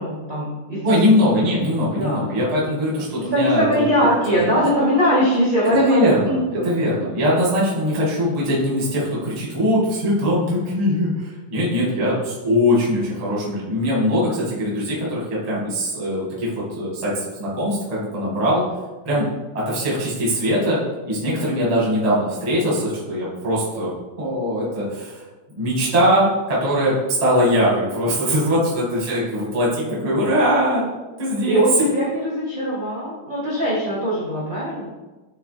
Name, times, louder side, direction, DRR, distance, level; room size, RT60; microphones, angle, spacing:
voice 1, 0.0-0.9 2.0-2.3 3.1-6.7 11.6-11.7 18.3-18.5 31.4-34.9, equal, 45° right, -7 dB, 1.1 m, -21 dB
voice 2, 0.8-3.8 4.4-4.5 5.7-18.6 19.0-19.3 19.5-20.8 21.0-25.2 25.5-26.9 27.2-30.8 31.2-31.6, equal, 20° right, -6 dB, 1.0 m, -21 dB
8.2 x 3.5 x 3.4 m, 1.2 s
omnidirectional pair, 3.9 m